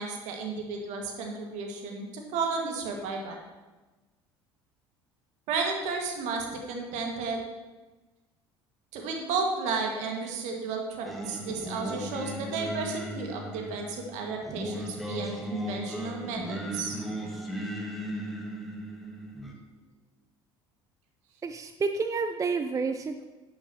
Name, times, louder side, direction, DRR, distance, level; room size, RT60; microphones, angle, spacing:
voice 1, 0.0-3.4 5.5-7.4 8.9-17.0, right 4 dB, 60° right, 2 dB, 1.9 m, -33 dB
Singing, 11.0-19.5, equal, ahead, 1.8 m, -37 dB
voice 2, 21.4-23.2, right 4 dB, 25° right, 8 dB, 0.5 m, -29 dB
11.0 x 9.4 x 2.9 m, 1.2 s
figure-of-eight pair, 60°, 14 cm